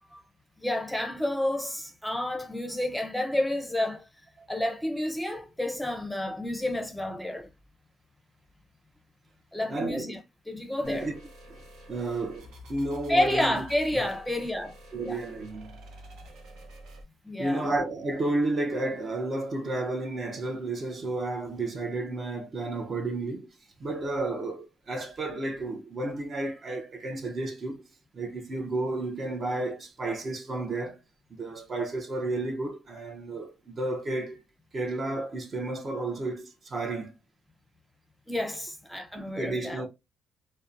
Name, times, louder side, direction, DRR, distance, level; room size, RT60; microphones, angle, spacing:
voice 1, 0.6-4.1 4.5-7.5 9.5-10.2 10.5-11.1 13.1-14.7 15.0-15.2 17.2-17.7 38.3-39.9, left 1 dB, 5° left, 0.6 m, -30 dB
voice 2, 9.7-10.2 10.8-11.1 11.5-11.6 11.9-13.6 13.9-14.1 14.9-15.8 17.4-23.5 23.8-27.8 28.1-31.0 31.3-34.4 34.7-37.1 39.1-39.9, right 2 dB, 45° right, 0.6 m, -32 dB
sound 1, 10.8-17.0, left 1 dB, 90° right, 0.7 m, -48 dB
2.7 x 2.1 x 2.4 m
cardioid pair, 90°, 0 cm